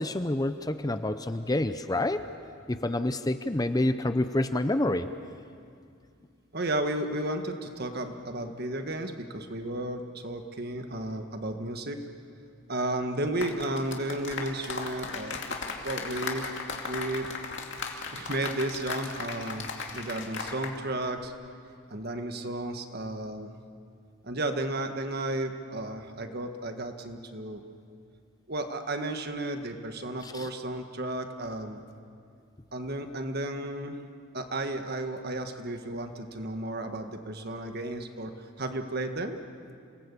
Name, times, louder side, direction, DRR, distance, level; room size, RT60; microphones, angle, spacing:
voice 1, 0.0-2.2 2.7-5.1 30.2-30.5, left 1 dB, 20° left, 10 dB, 0.6 m, -28 dB
voice 2, 6.5-12.0 12.7-15.6 15.8-16.4 16.9-17.3 18.1-21.3 21.9-23.5 24.2-27.6 28.5-31.8 32.7-33.9 34.3-38.3 38.6-39.4, right 1 dB, 50° right, 6 dB, 1.6 m, -33 dB
sound 1, 13.3-20.8 21.0-21.3, left 4 dB, 55° left, 2.6 m, -36 dB
28.5 x 19.0 x 8.5 m, 2.4 s
head